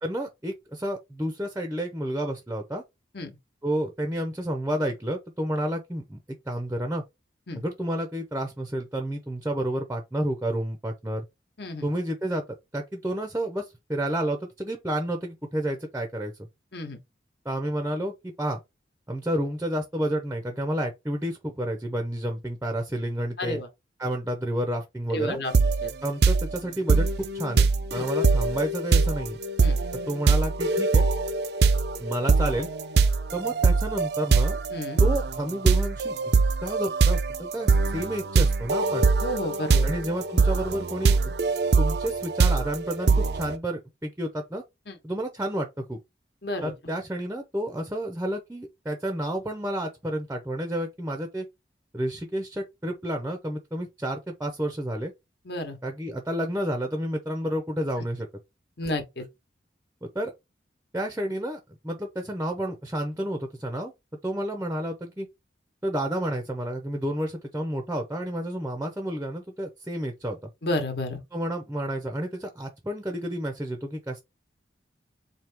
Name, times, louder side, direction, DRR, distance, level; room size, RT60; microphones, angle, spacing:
voice 1, 0.0-2.8 3.6-6.2 6.5-7.0 7.5-11.3 11.8-12.4 12.7-16.3 17.4-18.6 19.1-23.6 24.0-25.4 26.0-29.4 30.1-31.1 32.0-32.7 33.3-34.6 35.0-36.2 36.6-39.1 39.8-41.3 41.8-44.6 45.0-46.0 46.6-51.5 51.9-55.1 55.8-58.3 60.1-60.3 60.9-63.9 64.2-65.3 65.8-70.5 71.3-74.2, right 1 dB, 10° right, 0.6 m, -30 dB
voice 2, 11.6-11.9 16.7-17.0 23.4-23.7 25.1-25.5 25.8-25.9 28.0-28.1 29.6-29.8 34.7-35.0 39.2-39.9 44.9-45.0 46.4-46.7 55.4-55.8 58.8-59.3 70.6-71.2, left 1 dB, 60° left, 1.1 m, -31 dB
sound 1, 25.5-25.9 26.2-43.6, right 4 dB, 60° right, 0.5 m, -22 dB
4.5 x 2.8 x 3.4 m
head